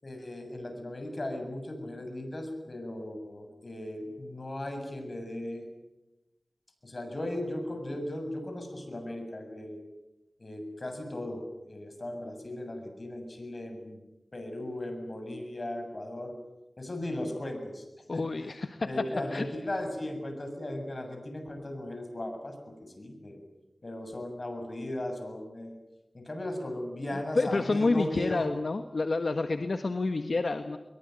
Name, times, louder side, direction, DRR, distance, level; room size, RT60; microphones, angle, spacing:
voice 1, 0.0-5.6 6.8-9.8 10.4-14.0 14.3-16.3 16.8-17.9 18.1-18.2 18.8-23.4 23.8-25.8 26.1-28.5, left 1 dB, 50° left, 5 dB, 7.6 m, -37 dB
voice 2, 18.1-18.9 19.3-19.5 27.3-30.8, left 3 dB, 75° left, 8 dB, 1.5 m, -28 dB
23.5 x 23.0 x 9.3 m, 0.99 s
cardioid pair, 45°, 0 cm